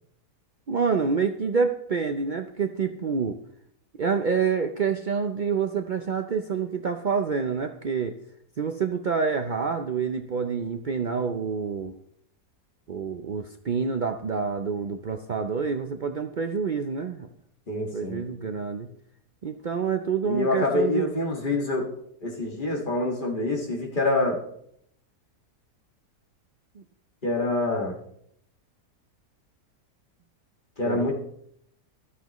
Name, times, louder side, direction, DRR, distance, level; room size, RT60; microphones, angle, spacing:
voice 1, 0.7-3.4 4.0-8.2 8.6-11.9 12.9-17.3 17.9-18.9 19.4-21.1 26.8-26.9 30.9-31.1, right 5 dB, 80° right, 6 dB, 0.4 m, -27 dB
voice 2, 17.7-18.2 20.2-21.9 22.2-24.4 27.2-28.0 30.8-31.1, left 2 dB, 30° left, -1 dB, 2.0 m, -26 dB
14.0 x 12.0 x 3.1 m, 0.72 s
omnidirectional pair, 1.7 m